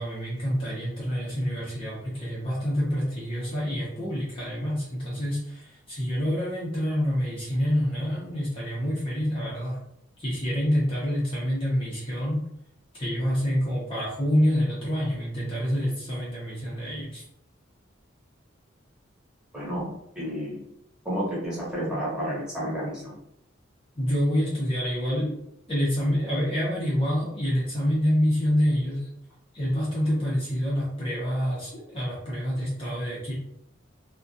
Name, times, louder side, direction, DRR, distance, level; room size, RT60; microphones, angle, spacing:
voice 1, 0.0-9.8 10.2-12.4 12.9-17.2 24.0-25.4 25.7-29.1 29.5-33.3, equal, 30° left, -6 dB, 0.7 m, -27 dB
voice 2, 19.5-20.6 21.0-23.1, equal, 5° right, -7 dB, 0.9 m, -31 dB
2.3 x 2.2 x 2.6 m, 0.77 s
head